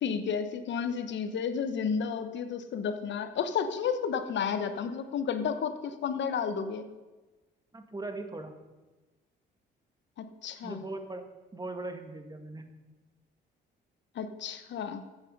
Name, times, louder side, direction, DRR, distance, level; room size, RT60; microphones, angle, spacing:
voice 1, 0.0-6.9 10.2-10.8 14.1-15.0, left 6 dB, 65° left, 9 dB, 1.0 m, -32 dB
voice 2, 7.7-8.5 10.6-11.3 11.5-12.7, right 2 dB, 20° right, 6 dB, 1.5 m, -39 dB
14.0 x 8.0 x 5.4 m, 1.2 s
cardioid pair, 90°, 20 cm